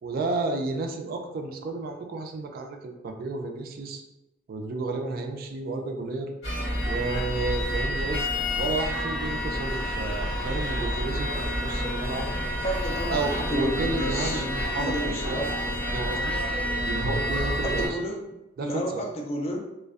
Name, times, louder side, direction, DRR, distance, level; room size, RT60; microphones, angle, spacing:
voice 1, 0.0-4.0 4.5-6.3 6.8-8.3 8.6-12.3 13.1-15.5 15.9-16.3 16.9-18.0 18.6-19.0, right 3 dB, 50° right, 4 dB, 0.3 m, -32 dB
sound 1, 6.4-17.9, equal, 65° left, 1.0 m, -29 dB
sound 2, 9.5-14.3, right 3 dB, 30° right, 0.8 m, -44 dB
voice 2, 12.6-14.4 14.8-15.5 17.6-19.6, equal, 30° left, 1 dB, 0.4 m, -32 dB
2.5 x 2.1 x 2.3 m, 0.97 s
head